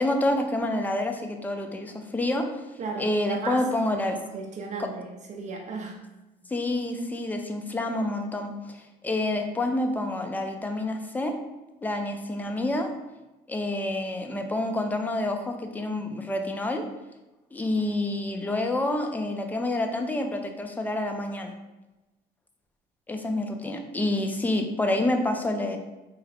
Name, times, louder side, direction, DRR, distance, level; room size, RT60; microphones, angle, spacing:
voice 1, 0.0-2.6 3.0-4.2 4.8-4.9 6.5-11.4 11.8-12.9 13.5-16.9 17.5-21.5 23.1-25.8, left 1 dB, 10° left, 4 dB, 0.4 m, -28 dB
voice 2, 2.8-3.7 4.1-6.0, right 4 dB, 45° right, 1 dB, 0.5 m, -35 dB
3.8 x 2.1 x 4.0 m, 1.0 s
cardioid pair, 110°, 17 cm